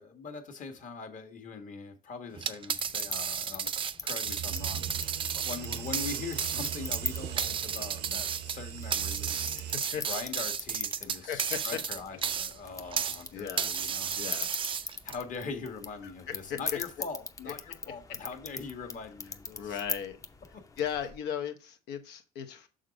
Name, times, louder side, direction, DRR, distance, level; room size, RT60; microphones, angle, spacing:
voice 1, 0.0-3.7 4.0-9.7 10.0-14.4 14.8-19.8 20.5-20.6, left 4 dB, 50° left, 1.4 m, -42 dB
sound 1, 2.3-13.2 13.6-15.2, right 7 dB, 30° right, 0.4 m, -33 dB
sound 2, 2.7-21.2, left 4 dB, 20° left, 0.6 m, -42 dB
sound 3, 4.2-9.8, right 10 dB, 80° right, 0.7 m, -39 dB
voice 2, 9.5-10.1 11.2-11.8 13.3-13.7 14.2-14.5 16.0-16.8 17.5-17.6 17.8-18.2 19.5-20.2 20.8-22.7, left 8 dB, 85° left, 0.9 m, -37 dB
6.5 x 3.9 x 5.1 m
cardioid pair, 110°, 17 cm